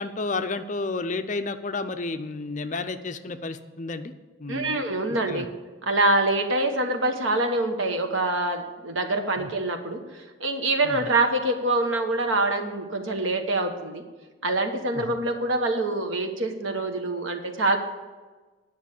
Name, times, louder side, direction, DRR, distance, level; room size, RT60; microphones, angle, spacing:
voice 1, 0.0-4.1 4.4-4.8 5.3-5.5 9.4-9.5 10.8-11.0 14.9-15.1, left 3 dB, 40° left, 9 dB, 0.5 m, -31 dB
voice 2, 4.5-5.5 5.8-14.0 14.4-17.8, right 2 dB, 80° right, 5 dB, 1.3 m, -25 dB
9.9 x 6.1 x 8.4 m, 1.3 s
head